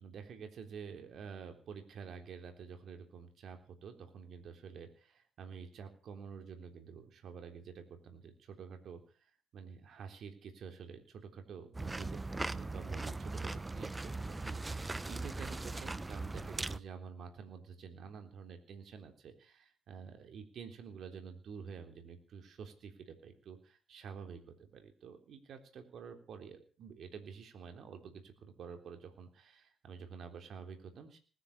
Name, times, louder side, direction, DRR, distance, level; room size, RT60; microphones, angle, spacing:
voice 1, 0.0-31.2, right 6 dB, 65° right, 6 dB, 3.7 m, -49 dB
sound 1, 11.7-16.8, right 2 dB, 20° right, 0.8 m, -39 dB
20.0 x 10.5 x 6.9 m, 0.39 s
cardioid pair, 90°, 0 cm